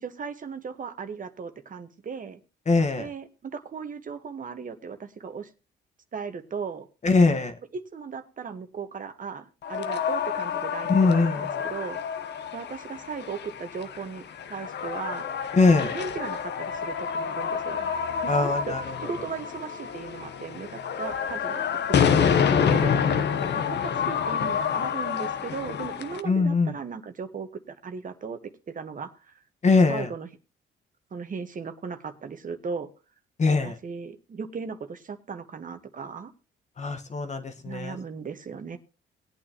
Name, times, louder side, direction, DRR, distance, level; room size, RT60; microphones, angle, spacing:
voice 1, 0.0-2.4 3.0-5.5 6.1-6.9 7.7-12.0 12.5-15.3 15.8-17.8 18.2-22.9 23.7-28.4 28.7-29.4 29.9-30.3 31.1-32.9 33.6-36.3 37.6-38.8, right 5 dB, 45° right, 8 dB, 1.3 m, -37 dB
voice 2, 2.7-3.1 7.0-7.5 10.9-11.4 15.5-15.9 18.3-18.8 26.2-26.7 29.6-30.1 33.4-33.7 36.8-38.0, left 3 dB, 35° left, 7 dB, 1.3 m, -22 dB
sound 1, 9.6-26.2, left 7 dB, 60° left, 1.0 m, -28 dB
19.5 x 8.7 x 2.9 m, 0.31 s
cardioid pair, 90°, 20 cm